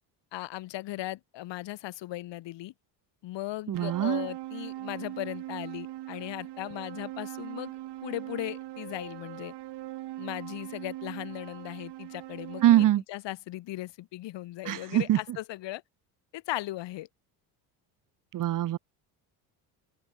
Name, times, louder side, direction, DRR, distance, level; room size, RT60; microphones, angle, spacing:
voice 1, 0.3-2.7 3.2-7.7 8.0-9.5 10.2-15.8 16.3-17.1, left 16 dB, 65° left, 5.0 m, -37 dB
voice 2, 3.7-4.3 12.6-13.0 14.7-15.2 18.3-18.8, right 13 dB, 45° right, 0.8 m, -23 dB
sound 1, 3.7-12.9, right 16 dB, 60° right, 1.6 m, -41 dB
open air
supercardioid pair, 90°, 46 cm